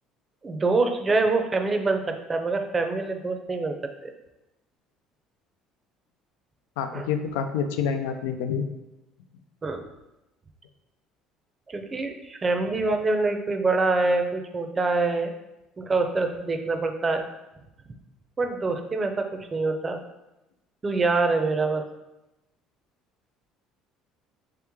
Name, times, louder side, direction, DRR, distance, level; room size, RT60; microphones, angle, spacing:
voice 1, 0.4-3.8 4.0-4.1 6.9-7.1 9.6-9.8 11.7-15.3 15.8-17.2 18.4-20.0 20.8-21.8, right 3 dB, 25° right, 6 dB, 0.5 m, -25 dB
voice 2, 6.8-8.7, left 7 dB, 90° left, 7 dB, 0.4 m, -27 dB
3.3 x 3.0 x 3.6 m, 0.95 s
supercardioid pair, 95°, 0 cm